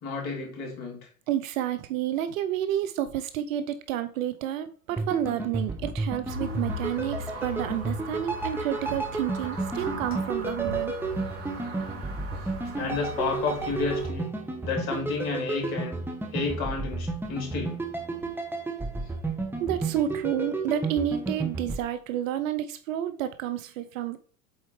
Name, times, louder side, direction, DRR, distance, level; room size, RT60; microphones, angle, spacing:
voice 1, 0.0-1.0 7.3-7.4 12.8-14.3 14.6-16.0 16.3-17.8, left 4 dB, 55° left, 3.1 m, -31 dB
voice 2, 1.3-10.9 19.6-24.2, right 11 dB, 65° right, 0.7 m, -30 dB
sound 1, 4.9-21.8, right 3 dB, 5° right, 1.2 m, -32 dB
sound 2, 6.3-14.1, equal, 30° right, 2.8 m, -39 dB
sound 3, 8.7-14.3, left 1 dB, 30° left, 3.2 m, -45 dB
8.0 x 4.3 x 3.2 m
hypercardioid pair, 95°, 44 cm